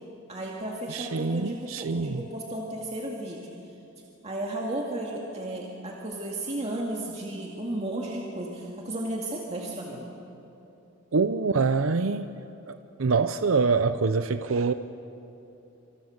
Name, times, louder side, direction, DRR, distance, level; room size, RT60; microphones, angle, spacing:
voice 1, 0.3-3.5 4.2-10.1, right 1 dB, 30° right, -2 dB, 2.2 m, -34 dB
voice 2, 0.9-2.2 11.1-12.3 12.7-14.7, right 4 dB, 85° right, 10 dB, 0.7 m, -25 dB
27.5 x 26.5 x 6.6 m, 2.9 s
head